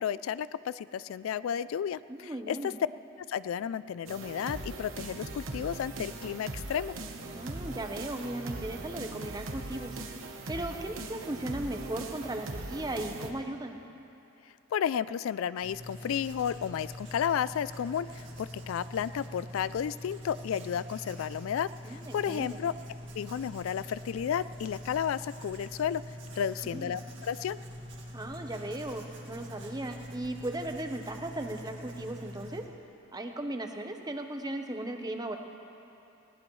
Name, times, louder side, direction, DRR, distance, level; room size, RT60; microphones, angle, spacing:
voice 1, 0.0-2.7 3.3-6.9 14.7-22.7 23.2-26.0 26.4-27.6, left 8 dB, 80° left, 16 dB, 0.3 m, -32 dB
voice 2, 2.1-2.8 7.3-10.0 10.5-13.8 21.8-22.6 26.6-26.9 28.1-32.6 33.1-35.4, right 1 dB, 20° right, 5 dB, 0.8 m, -37 dB
sound 1, 4.1-13.3, right 2 dB, 75° right, 1.1 m, -40 dB
Writing, 15.6-32.7, equal, 60° right, 2.1 m, -44 dB
20.0 x 18.0 x 3.1 m, 2.8 s
head